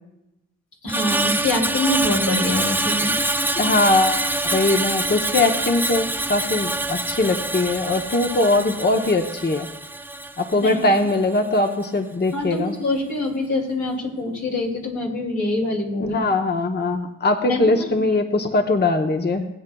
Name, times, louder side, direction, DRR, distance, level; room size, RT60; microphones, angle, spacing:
voice 1, 0.8-3.1 10.6-10.8 12.3-16.3 17.5-18.0, left 2 dB, 75° left, -1 dB, 2.8 m, -25 dB
Screech, 0.9-11.2 11.6-11.8, right 2 dB, 5° right, 0.5 m, -25 dB
voice 2, 3.6-9.7 10.4-12.8 16.0-19.5, left 2 dB, 35° left, 5 dB, 0.8 m, -21 dB
20.0 x 8.7 x 2.3 m, 0.95 s
cardioid pair, 45°, 31 cm